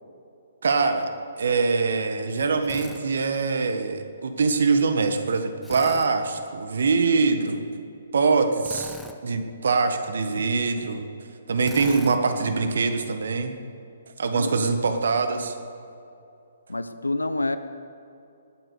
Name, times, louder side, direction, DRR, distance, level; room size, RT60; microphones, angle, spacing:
voice 1, 0.6-1.1 1.4-7.6 8.1-9.0 9.2-11.0 11.5-13.6 14.2-15.5, right 4 dB, 60° right, 7 dB, 1.5 m, -23 dB
Drill, 2.6-3.0 5.6-6.1 8.6-9.2 11.6-12.2, left 2 dB, 5° left, 0.9 m, -40 dB
voice 2, 7.2-7.6 14.2-14.8 16.7-17.6, left 2 dB, 85° left, 11 dB, 0.9 m, -29 dB
19.0 x 9.1 x 6.6 m, 2.7 s
figure-of-eight pair, 130°, 0 cm